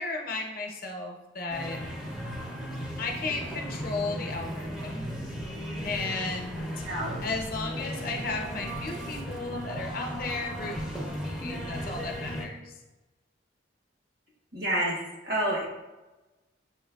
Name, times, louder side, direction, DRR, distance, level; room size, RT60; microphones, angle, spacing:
voice 1, 0.0-1.8 3.0-5.1 5.8-6.7 7.2-12.7, left 3 dB, 50° left, 1 dB, 0.7 m, -34 dB
sound 1, 1.5-12.5, equal, 5° right, 0.6 m, -36 dB
voice 2, 6.8-7.2 14.5-15.0 15.2-15.7, right 1 dB, 55° right, -2 dB, 1.1 m, -28 dB
6.5 x 3.2 x 2.3 m, 1.1 s
head